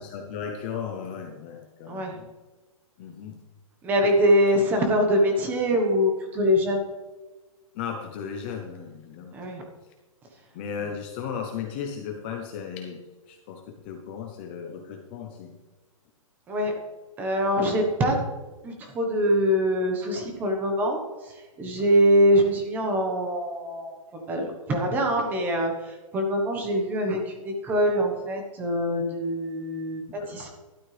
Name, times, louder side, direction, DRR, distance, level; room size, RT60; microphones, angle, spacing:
voice 1, 0.0-2.3 3.0-3.4 7.7-9.4 10.5-13.0 13.3-15.5 30.2-30.5, left 7 dB, 20° left, 3 dB, 0.7 m, -36 dB
voice 2, 1.9-2.2 3.8-6.8 9.3-9.6 16.5-16.7 17.2-18.1 18.6-30.5, equal, 10° right, 3 dB, 1.1 m, -24 dB
12.5 x 12.0 x 3.4 m, 1.2 s
hypercardioid pair, 175°, 18 cm